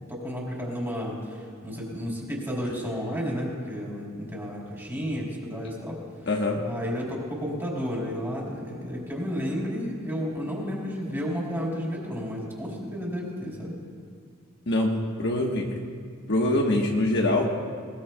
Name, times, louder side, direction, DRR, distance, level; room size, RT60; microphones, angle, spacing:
voice 1, 0.0-6.0 6.6-13.8, equal, 10° right, -4 dB, 3.3 m, -32 dB
voice 2, 6.3-6.6 14.7-15.7 16.3-17.5, left 1 dB, 55° left, 0 dB, 1.2 m, -24 dB
20.0 x 19.0 x 2.2 m, 2.1 s
head